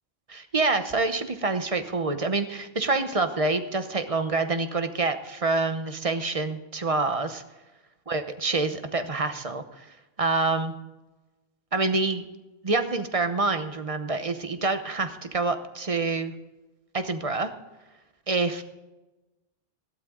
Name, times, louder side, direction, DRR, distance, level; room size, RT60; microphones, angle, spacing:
voice 1, 0.3-7.4 8.1-9.9 10.2-10.7 11.7-12.2 12.6-16.3 16.9-17.5 18.3-18.6, right 3 dB, 35° right, 9 dB, 0.9 m, -27 dB
15.0 x 12.0 x 3.7 m, 1.1 s
omnidirectional pair, 1.1 m